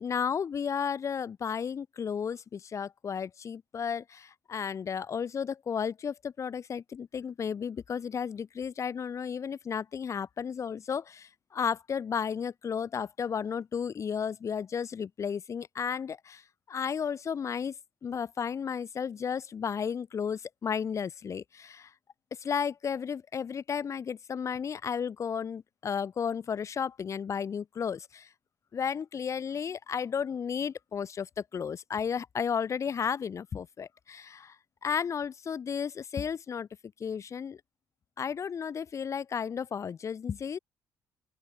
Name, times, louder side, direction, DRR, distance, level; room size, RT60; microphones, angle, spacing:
voice 1, 0.0-16.4 16.7-17.8 18.0-21.9 22.4-28.3 28.7-34.5 34.8-36.7 37.0-37.6 38.2-40.6, left 7 dB, 45° left, 1.4 m, -33 dB
open air
hypercardioid pair, 50°, 7 cm